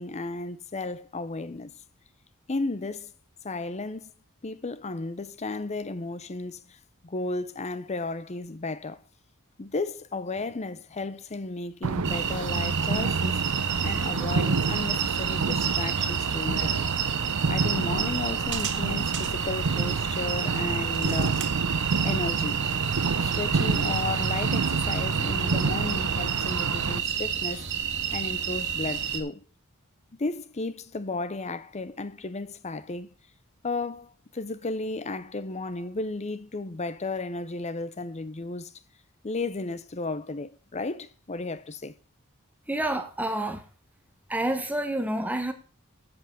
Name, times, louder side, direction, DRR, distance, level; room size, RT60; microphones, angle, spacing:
voice 1, 0.0-1.8 2.5-3.1 3.4-4.1 4.4-9.0 9.6-16.9 17.5-21.4 22.0-22.7 23.2-29.4 30.2-33.1 33.6-38.7 39.2-41.9, left 3 dB, 30° left, 0.6 m, -34 dB
sound 1, 11.8-27.0, right 4 dB, 90° right, 0.7 m, -28 dB
sound 2, 12.0-29.2, right 8 dB, 55° right, 1.7 m, -30 dB
voice 2, 42.7-43.6 44.3-45.5, right 1 dB, 5° right, 1.2 m, -28 dB
7.9 x 7.8 x 6.8 m
head